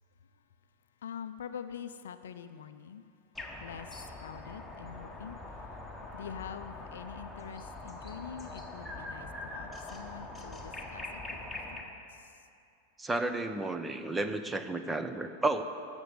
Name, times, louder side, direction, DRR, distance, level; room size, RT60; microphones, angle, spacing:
voice 1, 1.0-3.0 3.6-5.4 6.1-11.4 11.7-11.9, left 8 dB, 60° left, 11 dB, 0.5 m, -45 dB
sound 1, 3.3-11.8, left 2 dB, 5° left, 1.5 m, -43 dB
voice 2, 13.0-15.6, right 2 dB, 10° right, 9 dB, 0.7 m, -32 dB
13.5 x 7.1 x 8.2 m, 2.5 s
figure-of-eight pair, 90°, 0 cm